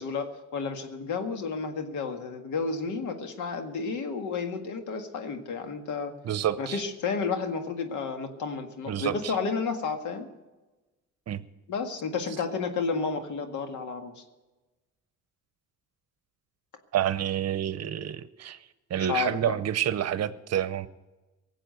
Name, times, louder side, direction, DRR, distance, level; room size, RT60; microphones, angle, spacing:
voice 1, 0.0-6.1 6.6-10.3 11.7-14.2 19.1-19.6, left 5 dB, 75° left, 6 dB, 1.8 m, -31 dB
voice 2, 6.2-6.8 8.9-9.3 11.3-11.4 16.9-18.6 18.9-20.9, right 10 dB, 55° right, 15 dB, 0.8 m, -28 dB
18.5 x 7.7 x 7.9 m, 1.1 s
cardioid pair, 90°, 30 cm